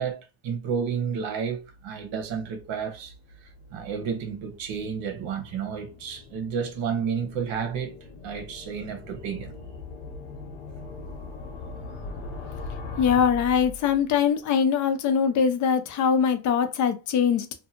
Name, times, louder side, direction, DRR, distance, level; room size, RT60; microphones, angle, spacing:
voice 1, 0.0-3.1 3.7-8.0 8.2-9.5, right 7 dB, 75° right, 1.0 m, -31 dB
sound 1, 1.3-14.3, left 3 dB, 75° left, 1.0 m, -41 dB
voice 2, 13.0-17.5, left 7 dB, 40° left, 0.5 m, -22 dB
2.7 x 2.2 x 2.7 m
cardioid pair, 160°, 47 cm